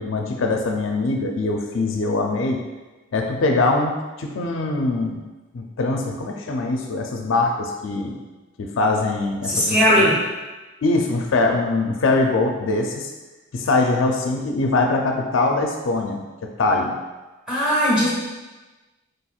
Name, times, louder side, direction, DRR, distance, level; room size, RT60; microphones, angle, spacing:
voice 1, 0.0-2.6 3.1-5.2 5.5-8.2 8.6-10.1 10.8-13.1 13.5-17.0, left 2 dB, 70° left, 2 dB, 0.4 m, -22 dB
voice 2, 9.4-10.1 17.5-18.1, equal, 5° right, -8 dB, 1.4 m, -18 dB
4.9 x 4.3 x 2.4 m, 1.2 s
head